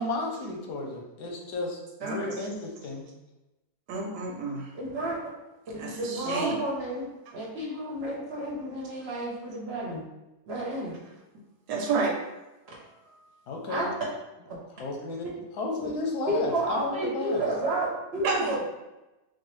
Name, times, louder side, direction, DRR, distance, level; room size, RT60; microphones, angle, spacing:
voice 1, 0.0-3.0 13.5-13.8 14.8-17.4, left 2 dB, 90° left, 1 dB, 1.3 m, -33 dB
voice 2, 2.0-2.5 3.9-4.7 5.8-6.6 11.7-12.2 18.2-18.6, right 3 dB, 80° right, 1 dB, 1.3 m, -30 dB
voice 3, 4.7-5.2 5.7-7.0 7.3-10.0 10.5-10.9 13.7-13.9 14.5-14.6 15.8-15.9 16.3-18.6, right 1 dB, 50° right, -4 dB, 0.8 m, -31 dB
4.5 x 2.1 x 3.1 m, 1.0 s
omnidirectional pair, 1.7 m